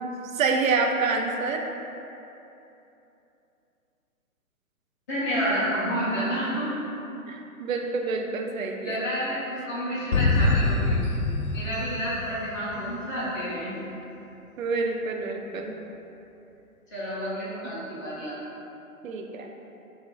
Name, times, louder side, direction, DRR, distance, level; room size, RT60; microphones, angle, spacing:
voice 1, 0.0-1.7 7.3-9.0 14.6-15.7 19.0-19.5, right 4 dB, 65° right, 2 dB, 0.6 m, -27 dB
voice 2, 5.1-6.7 8.8-11.0 11.5-13.8 16.9-18.4, equal, 10° left, -10 dB, 0.4 m, -29 dB
sound 1, 10.1-12.9, left 2 dB, 85° left, 0.6 m, -24 dB
4.8 x 2.6 x 3.8 m, 2.9 s
figure-of-eight pair, 130°, 44 cm